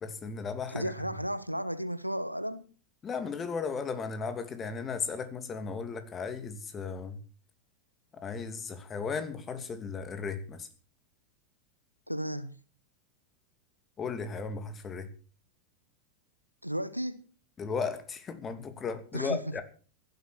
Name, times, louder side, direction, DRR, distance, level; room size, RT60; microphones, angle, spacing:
voice 1, 0.0-0.9 3.0-7.2 8.2-10.7 14.0-15.1 17.6-19.6, left 5 dB, 25° left, 2.7 m, -35 dB
voice 2, 0.7-2.7 12.1-12.6 16.6-17.3 19.1-19.6, equal, 90° right, 1.2 m, -34 dB
15.5 x 12.0 x 6.5 m
figure-of-eight pair, 90°, 0 cm